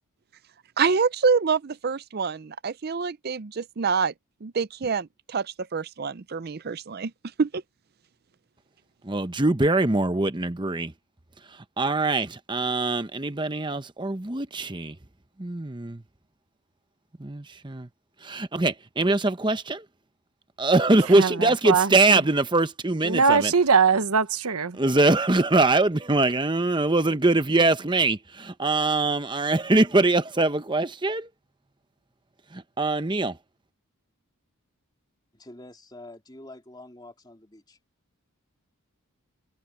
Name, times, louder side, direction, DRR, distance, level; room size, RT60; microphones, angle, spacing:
voice 1, 0.8-4.1 4.4-7.1 7.4-7.6, right 5 dB, 45° right, 0.5 m, -26 dB
voice 2, 9.0-10.9 11.8-15.0 15.4-16.0 17.2-17.9 18.2-19.8 20.6-23.5 24.7-31.3 32.5-33.4, right 2 dB, 20° right, 0.8 m, -23 dB
voice 3, 21.2-22.2 23.0-24.8, right 5 dB, 80° right, 1.0 m, -22 dB
voice 4, 35.3-37.8, left 1 dB, 20° left, 3.6 m, -46 dB
head